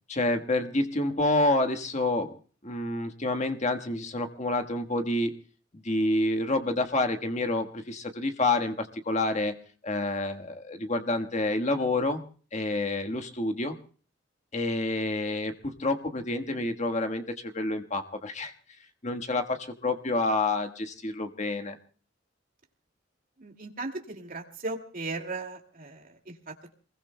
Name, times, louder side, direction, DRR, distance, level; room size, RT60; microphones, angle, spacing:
voice 1, 0.1-2.3 2.6-5.4 5.8-9.6 9.8-12.2 12.5-13.7 14.5-18.5 19.0-21.8, left 2 dB, 35° left, 6 dB, 1.4 m, -28 dB
voice 2, 23.4-26.5, right 3 dB, 50° right, 3 dB, 2.3 m, -37 dB
28.0 x 21.0 x 2.2 m, 0.41 s
head